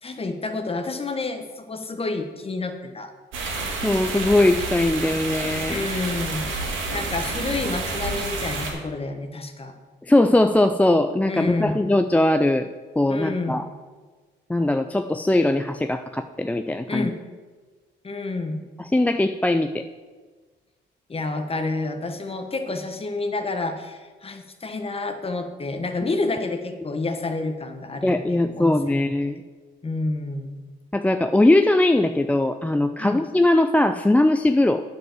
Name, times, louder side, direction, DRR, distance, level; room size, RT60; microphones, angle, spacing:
voice 1, 0.0-3.1 5.7-6.5 6.9-9.7 11.3-11.8 13.1-13.6 16.9-17.2 18.0-18.6 21.1-29.0 29.8-30.6 33.0-33.2, left 3 dB, 30° left, 6 dB, 1.2 m, -29 dB
sound 1, 3.3-8.7, right 3 dB, 90° right, 2.1 m, -29 dB
voice 2, 3.8-5.9 10.1-12.7 13.0-13.6 14.5-17.1 18.8-19.8 28.0-29.4 30.9-34.8, left 1 dB, 5° left, 7 dB, 0.4 m, -20 dB
9.3 x 5.3 x 7.7 m, 1.4 s
cardioid pair, 90°, 20 cm